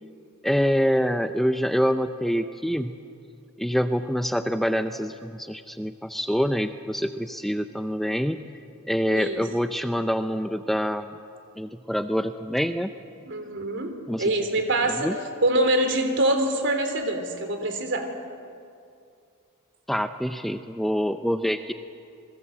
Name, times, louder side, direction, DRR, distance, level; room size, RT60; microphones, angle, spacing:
voice 1, 0.4-3.0 3.6-8.4 8.9-11.1 11.6-12.9 14.1-14.5 15.0-15.1 19.9-21.7, equal, ahead, 8 dB, 0.5 m, -26 dB
voice 2, 9.1-9.5 13.2-15.1 15.4-18.1, right 1 dB, 55° right, 6 dB, 3.2 m, -24 dB
28.5 x 21.0 x 7.7 m, 2.4 s
head